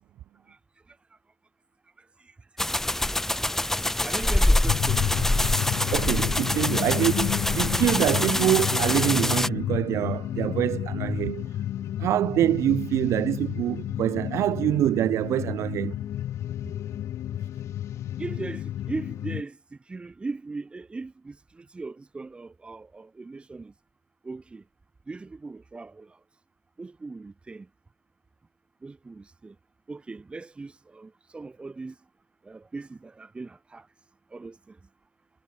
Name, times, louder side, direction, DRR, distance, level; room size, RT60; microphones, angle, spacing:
voice 1, 2.0-2.3 4.0-5.3 18.2-23.7 24.2-24.6 25.1-26.2 26.8-27.7 28.8-29.6 29.9-32.0 32.4-33.9 34.3-34.8, right 3 dB, 15° right, 3.1 m, -39 dB
sound 1, 2.6-9.5, left 1 dB, 5° left, 0.8 m, -25 dB
sound 2, 4.7-19.4, left 12 dB, 40° left, 0.5 m, -31 dB
voice 2, 5.9-11.5 12.0-16.0, right 13 dB, 45° right, 0.4 m, -25 dB
supercardioid pair, 105°, 7 cm